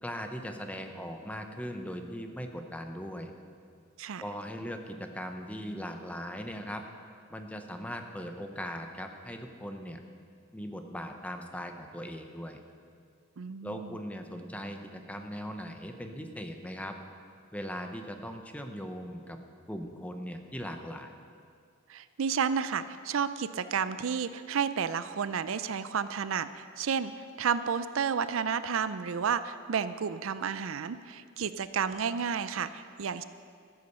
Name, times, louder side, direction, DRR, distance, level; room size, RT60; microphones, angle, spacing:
voice 1, 0.0-3.3 4.2-6.8 7.3-10.0 10.5-12.6 13.6-16.9 17.5-19.4 19.7-21.1, equal, 5° left, 5 dB, 0.8 m, -39 dB
voice 2, 13.4-13.9 21.9-27.1 27.4-33.2, right 6 dB, 75° right, 13 dB, 0.5 m, -31 dB
14.0 x 8.5 x 6.7 m, 2.2 s
head